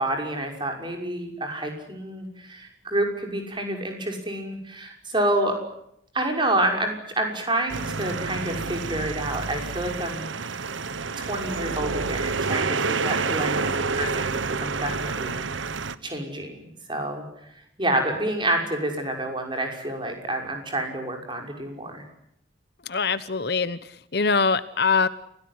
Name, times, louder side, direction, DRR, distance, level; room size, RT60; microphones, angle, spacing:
voice 1, 0.0-5.6 6.1-10.7 11.2-15.4 16.0-17.3 17.8-22.0, right 1 dB, 25° right, 3 dB, 6.0 m, -28 dB
sound 1, 7.7-16.0, right 4 dB, 80° right, 1.1 m, -28 dB
voice 2, 22.8-25.1, left 4 dB, 55° left, 15 dB, 1.0 m, -23 dB
29.5 x 17.5 x 9.7 m, 0.76 s
head